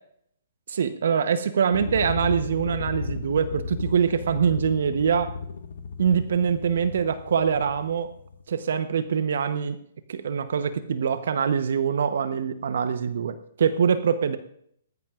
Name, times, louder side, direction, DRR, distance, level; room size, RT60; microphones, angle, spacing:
voice 1, 0.7-5.3 6.0-8.1 8.5-9.8 10.1-14.4, right 7 dB, 65° right, 11 dB, 0.9 m, -24 dB
sound 1, 1.7-8.4, left 5 dB, 75° left, 1.5 m, -34 dB
19.0 x 14.0 x 2.5 m, 0.68 s
hypercardioid pair, 135°, 0 cm